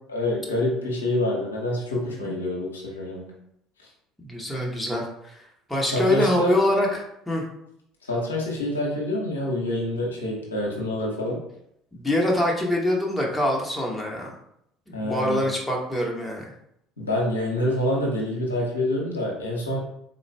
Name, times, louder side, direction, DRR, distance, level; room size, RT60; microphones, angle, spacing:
voice 1, 0.1-3.3 5.9-6.6 8.1-11.4 14.9-15.5 17.0-19.8, left 1 dB, 80° left, -4 dB, 0.8 m, -26 dB
voice 2, 4.2-5.4 5.7-7.4 11.9-14.3 14.9-16.5, left 1 dB, 10° left, -2 dB, 1.0 m, -24 dB
3.8 x 2.4 x 3.3 m, 0.75 s
figure-of-eight pair, 60°, 0 cm